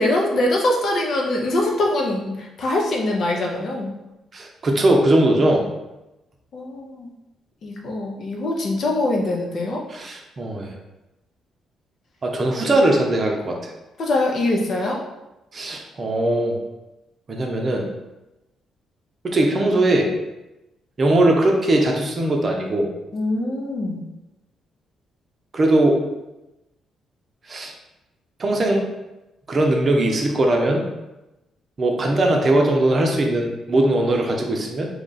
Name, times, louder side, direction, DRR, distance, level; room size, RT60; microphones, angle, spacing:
voice 1, 0.0-3.9 6.5-7.1 7.6-9.8 14.0-15.0 23.1-24.1, left 1 dB, 60° left, 0 dB, 0.7 m, -23 dB
voice 2, 4.3-5.6 9.9-10.7 12.2-13.6 15.5-16.6 17.3-17.9 19.2-20.1 21.0-22.9 25.5-26.0 27.5-27.7 28.4-28.8 29.5-30.8 31.8-34.9, right 1 dB, 40° right, 1 dB, 0.6 m, -19 dB
2.9 x 2.4 x 3.9 m, 0.98 s
cardioid pair, 90°, 0 cm